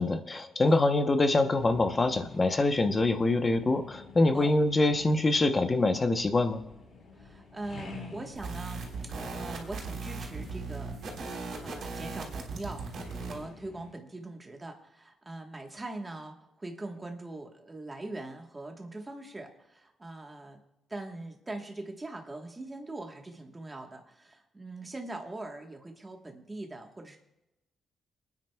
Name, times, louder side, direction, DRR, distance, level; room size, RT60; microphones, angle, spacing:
voice 1, 0.0-6.6, left 2 dB, 20° left, 8 dB, 0.7 m, -25 dB
sound 1, 1.5-13.9, left 3 dB, 45° left, 3.1 m, -49 dB
voice 2, 7.2-11.0 11.6-20.6 20.9-27.2, right 2 dB, 15° right, 3 dB, 1.2 m, -42 dB
sound 2, 8.3-13.4, right 4 dB, 55° right, 3.6 m, -38 dB
28.5 x 9.6 x 2.2 m, 0.96 s
wide cardioid pair, 170°, 0 cm